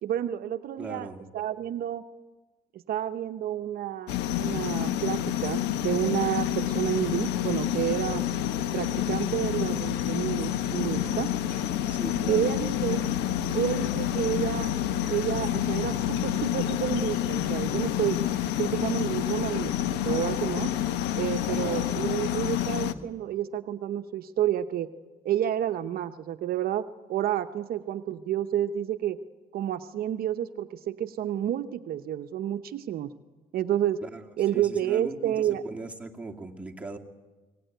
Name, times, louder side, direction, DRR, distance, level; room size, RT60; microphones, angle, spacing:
voice 1, 0.0-2.0 2.9-4.1 4.4-8.2 8.7-11.3 12.3-13.0 13.5-14.7 15.1-18.2 18.6-20.7 21.1-24.9 25.2-29.2 29.5-33.1 33.5-34.0 34.4-35.6, right 11 dB, 65° right, 9 dB, 0.9 m, -30 dB
voice 2, 0.8-1.3 11.9-12.6 21.5-21.8 34.0-34.2 34.5-37.0, right 3 dB, 10° right, 0 dB, 2.4 m, -39 dB
sound 1, 4.1-22.9, left 11 dB, 85° left, 1.1 m, -28 dB
23.5 x 18.0 x 9.3 m, 1.2 s
cardioid pair, 110°, 17 cm